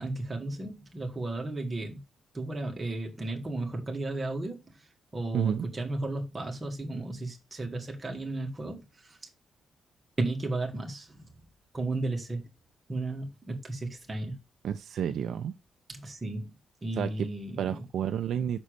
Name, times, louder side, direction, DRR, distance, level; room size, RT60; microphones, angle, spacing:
voice 1, 0.0-2.0 2.3-4.7 5.1-9.2 10.2-11.3 11.7-12.4 12.9-14.4 15.9-16.6 16.8-17.8, right 2 dB, 20° right, 1.8 m, -34 dB
voice 2, 5.3-5.7 14.6-15.5 17.0-17.3 17.6-18.6, right 9 dB, 60° right, 0.5 m, -30 dB
6.2 x 4.2 x 6.5 m
wide cardioid pair, 180°, 0 cm